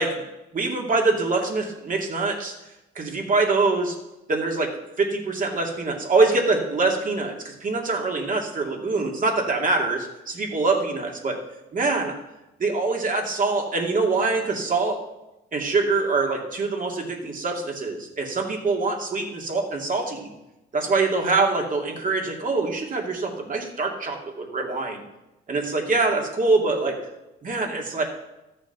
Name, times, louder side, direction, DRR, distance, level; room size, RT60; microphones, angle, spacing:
voice 1, 0.5-2.5 2.9-4.0 4.3-11.4 11.7-12.1 12.6-15.0 15.5-20.3 20.7-25.0 25.5-27.0 27.4-28.0, right 3 dB, 40° right, 1 dB, 2.7 m, -24 dB
14.0 x 6.9 x 6.1 m, 0.96 s
cardioid pair, 90°, 20 cm